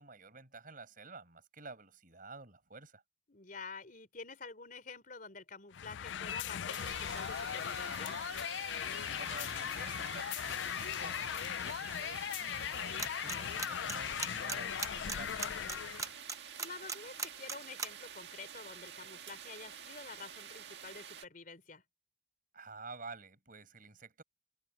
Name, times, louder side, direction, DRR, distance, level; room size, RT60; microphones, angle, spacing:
voice 1, 0.0-3.0 9.1-16.0 22.5-24.2, right 3 dB, 45° right, 5.9 m, -51 dB
voice 2, 3.3-8.1 16.6-21.8, left 4 dB, 45° left, 4.0 m, -49 dB
sound 1, 5.7-16.1, left 9 dB, 75° left, 0.4 m, -38 dB
sound 2, 6.7-21.2, right 8 dB, 60° right, 2.0 m, -49 dB
sound 3, 13.0-13.3 13.6-17.9, right 5 dB, 15° right, 0.8 m, -36 dB
head